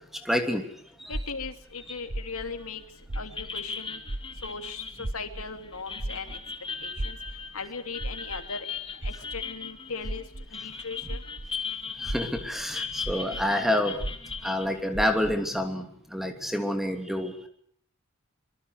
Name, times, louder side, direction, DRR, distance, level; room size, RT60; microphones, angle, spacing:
voice 1, 0.2-0.6 1.0-1.2 11.4-14.0 14.4-17.3, left 1 dB, ahead, 6 dB, 2.9 m, -28 dB
voice 2, 1.1-2.8 3.1-4.0 4.4-6.4 6.8-7.2 7.5-10.2 10.5-11.2, left 4 dB, 85° left, 7 dB, 3.0 m, -38 dB
sound 1, 1.1-3.8 4.0-11.6 12.0-15.5, right 1 dB, 50° right, 1.1 m, -37 dB
sound 2, 2.6-2.9 3.1-14.7, left 5 dB, 25° left, 2.2 m, -38 dB
25.0 x 24.0 x 6.5 m, 0.63 s
head